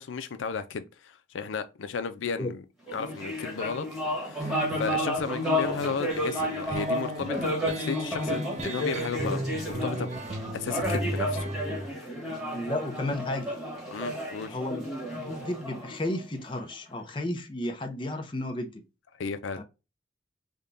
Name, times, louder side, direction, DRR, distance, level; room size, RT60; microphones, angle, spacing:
voice 1, 0.0-2.6 2.9-3.9 4.2-10.1 10.5-11.5 11.8-12.1 13.9-14.6 19.2-19.6, left 5 dB, 90° left, 0.5 m, -34 dB
sound 1, 2.9-16.6, equal, ahead, 1.2 m, -32 dB
sound 2, 4.4-11.9, right 1 dB, 35° right, 0.4 m, -36 dB
voice 2, 12.5-13.5 14.5-18.8 19.6-19.7, left 1 dB, 25° left, 0.6 m, -33 dB
3.6 x 2.2 x 3.7 m
head